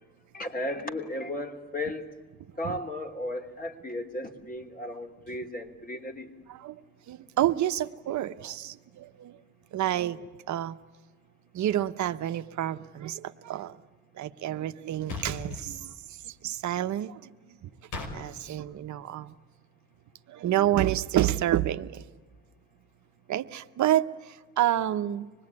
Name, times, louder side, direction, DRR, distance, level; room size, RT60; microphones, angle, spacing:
voice 1, 0.3-2.1 2.6-6.3, left 1 dB, 30° left, 3 dB, 3.1 m, -35 dB
voice 2, 6.5-6.8 7.1-9.4 9.7-10.8 11.5-13.8 14.1-17.2 17.5-17.7 18.1-19.3 20.3-22.0 23.3-25.3, right 12 dB, 70° right, 9 dB, 0.9 m, -29 dB
sound 1, 15.1-15.6 17.9-18.1, left 4 dB, 85° left, 5.0 m, -36 dB
26.0 x 20.5 x 9.7 m, 1.4 s
cardioid pair, 90°, 30 cm